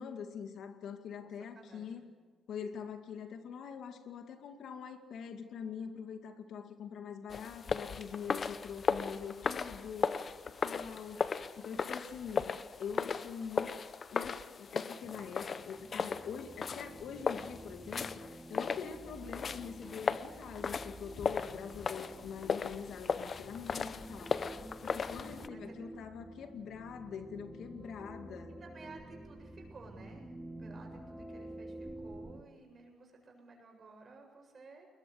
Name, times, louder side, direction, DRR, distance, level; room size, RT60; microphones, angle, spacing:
voice 1, 0.0-2.0 2.5-13.7 14.1-24.4 24.8-28.5, left 7 dB, 70° left, 6 dB, 2.2 m, -44 dB
voice 2, 1.2-2.1 25.5-25.9 28.6-34.9, right 3 dB, 40° right, 2 dB, 7.8 m, -55 dB
sound 1, 7.3-25.5, left 5 dB, 45° left, 0.9 m, -37 dB
sound 2, 15.0-32.4, right 1 dB, 5° right, 2.2 m, -50 dB
21.5 x 21.0 x 8.1 m, 1.4 s
cardioid pair, 90°, 0 cm